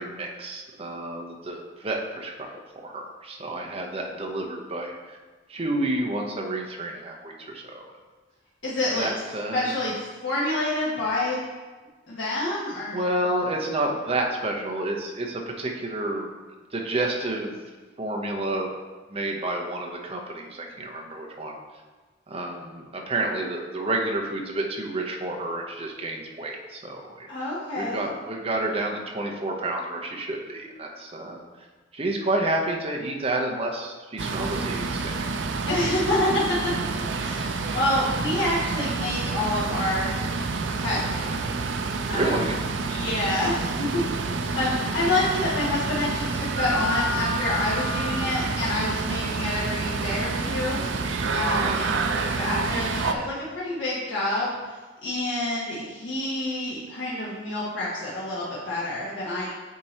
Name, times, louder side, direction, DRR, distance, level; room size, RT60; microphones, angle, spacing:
voice 1, 0.0-5.2 5.5-7.9 8.9-9.7 12.9-16.3 16.7-17.6 18.0-18.7 19.1-21.5 22.3-27.5 27.8-31.4 31.9-35.1 42.1-42.6 51.6-51.7, right 2 dB, 30° right, 0 dB, 0.8 m, -30 dB
voice 2, 8.6-9.1 9.5-11.4 12.1-13.0 27.3-28.0 35.7-36.7 37.1-40.1 40.8-41.4 41.7-42.4 42.9-44.0 44.3-59.5, left 1 dB, 80° left, -8 dB, 1.3 m, -28 dB
sound 1, 34.2-53.1, right 3 dB, 75° right, 0.5 m, -28 dB
8.3 x 2.9 x 4.3 m, 1.3 s
head